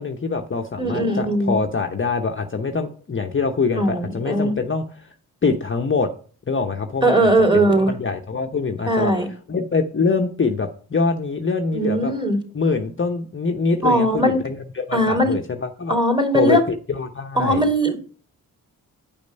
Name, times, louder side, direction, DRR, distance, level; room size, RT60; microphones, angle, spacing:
voice 1, 0.0-5.1 5.4-6.1 6.5-9.1 9.5-12.1 12.5-15.9 16.3-16.6 16.9-17.6, left 4 dB, 35° left, 4 dB, 0.9 m, -24 dB
voice 2, 0.8-1.6 3.8-4.5 7.0-7.9 8.9-9.3 11.7-12.4 13.8-14.4 14.9-15.3 15.9-16.6 17.4-18.0, right 1 dB, 15° right, 3 dB, 2.8 m, -19 dB
8.8 x 5.2 x 5.3 m, 0.41 s
cardioid pair, 55°, 36 cm